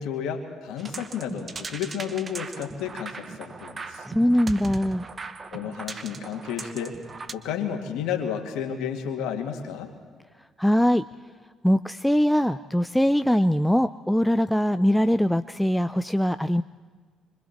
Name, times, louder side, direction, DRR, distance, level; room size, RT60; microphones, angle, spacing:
voice 1, 0.0-4.1 5.5-7.0 7.3-9.9, left 8 dB, 70° left, 3 dB, 2.4 m, -32 dB
sound 1, 0.8-7.3, right 4 dB, 35° right, 1.2 m, -39 dB
voice 2, 4.1-5.1 10.6-11.1 11.6-16.6, equal, 5° left, 11 dB, 0.5 m, -22 dB
26.0 x 25.0 x 4.4 m, 1.5 s
hypercardioid pair, 55°, 0 cm